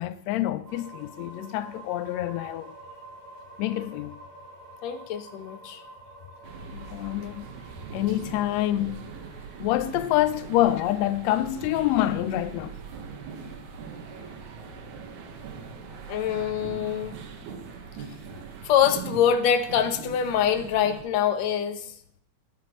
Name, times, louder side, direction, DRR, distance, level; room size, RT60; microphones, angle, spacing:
voice 1, 0.0-2.7 3.6-4.2 6.7-7.4 7.9-9.0 9.6-12.7, left 14 dB, 90° left, 1.5 m, -26 dB
sound 1, 0.6-12.4, right 2 dB, 50° right, 6.7 m, -49 dB
voice 2, 4.8-5.8 16.1-17.2 18.6-21.9, left 8 dB, 65° left, 1.9 m, -24 dB
sound 2, 6.4-21.0, right 6 dB, 70° right, 2.6 m, -41 dB
sound 3, 8.3-16.3, right 2 dB, 85° right, 6.0 m, -53 dB
19.0 x 10.5 x 3.0 m
omnidirectional pair, 3.8 m